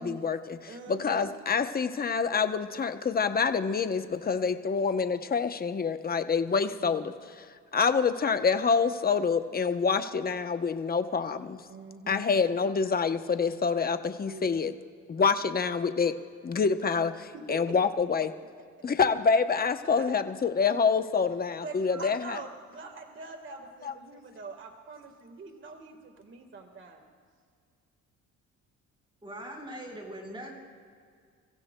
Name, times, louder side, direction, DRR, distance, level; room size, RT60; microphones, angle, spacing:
voice 1, 0.0-0.6 0.9-7.5 7.7-11.6 12.1-14.7 15.1-16.1 16.4-18.3 18.8-22.4, left 5 dB, 30° left, 9 dB, 0.8 m, -27 dB
voice 2, 0.7-1.3 6.4-6.8 11.7-12.3 14.2-14.6 17.3-17.8 19.8-20.1 21.6-27.1, right 4 dB, 40° right, 3 dB, 1.5 m, -44 dB
voice 3, 29.2-30.5, right 1 dB, 15° right, 0 dB, 4.3 m, -41 dB
29.5 x 15.5 x 2.2 m, 2.1 s
cardioid pair, 90°, 30 cm